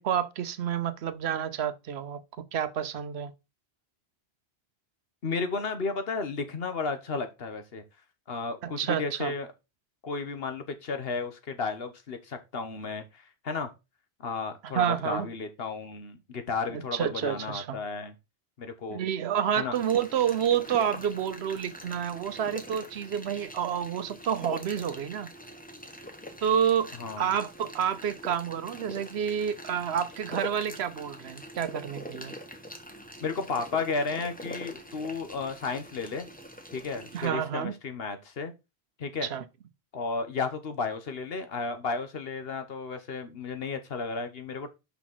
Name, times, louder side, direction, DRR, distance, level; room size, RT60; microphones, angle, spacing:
voice 1, 0.0-2.2 2.5-3.3 8.6-9.3 14.7-15.3 16.7-17.8 18.9-25.3 26.4-26.9 27.2-32.3 37.1-37.7 39.2-39.4, right 8 dB, 80° right, 1.0 m, -29 dB
voice 2, 5.2-7.8 8.3-9.5 10.0-13.7 14.2-18.1 18.6-19.0 19.6-19.8 27.0-27.3 33.2-36.3 36.7-38.5 39.0-39.3 39.9-44.7, left 4 dB, 65° left, 1.3 m, -33 dB
sound 1, 19.7-37.3, equal, 10° left, 1.1 m, -44 dB
5.8 x 4.1 x 5.9 m
omnidirectional pair, 1.1 m